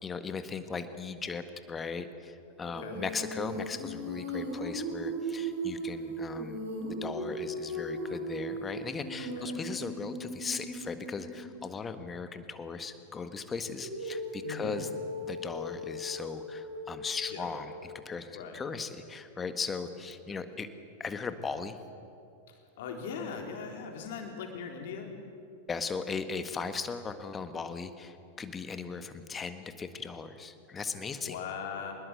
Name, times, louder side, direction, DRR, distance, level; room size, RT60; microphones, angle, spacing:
voice 1, 0.0-6.6 6.9-14.9 15.2-20.7 21.0-21.8 25.7-31.4, left 5 dB, 20° left, 9 dB, 1.7 m, -38 dB
voice 2, 2.6-3.0 9.2-9.6 14.4-14.8 17.3-17.5 18.3-18.6 22.5-25.2 31.2-31.9, left 6 dB, 55° left, 3 dB, 3.9 m, -40 dB
Female singing, 2.7-11.6 13.8-18.0, equal, 65° right, 7.5 m, -38 dB
26.0 x 20.5 x 7.9 m, 2.5 s
figure-of-eight pair, 90°, 0 cm